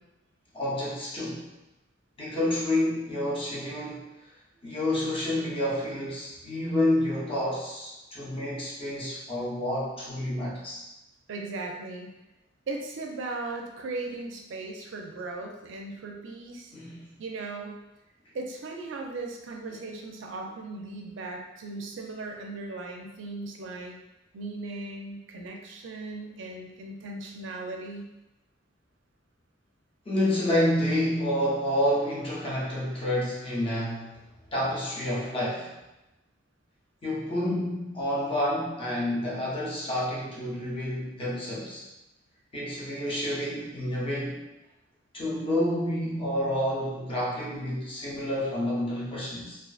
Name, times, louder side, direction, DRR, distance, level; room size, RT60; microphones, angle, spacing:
voice 1, 0.5-1.5 2.2-4.1 4.6-10.8 16.7-17.1 30.1-34.2 34.5-35.7 37.0-41.8 42.5-44.4 45.1-49.6, left 1 dB, 30° left, -6 dB, 0.6 m, -29 dB
voice 2, 11.3-12.1 12.7-16.7 17.2-17.8 18.3-24.0 24.3-28.0, right 3 dB, 65° right, 1 dB, 0.4 m, -37 dB
2.4 x 2.4 x 2.3 m, 0.99 s
head